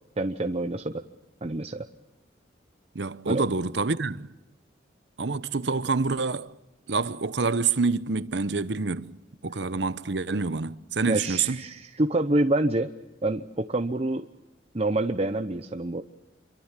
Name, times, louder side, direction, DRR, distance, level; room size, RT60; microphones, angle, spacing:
voice 1, 0.2-0.9 1.4-1.9 3.3-3.5 11.1-12.9 13.2-14.3 14.7-16.0, right 2 dB, 35° right, 0.8 m, -27 dB
voice 2, 2.9-4.3 5.2-6.5 6.9-9.2 9.4-11.6, right 4 dB, 65° right, 0.9 m, -27 dB
27.5 x 23.0 x 7.5 m
head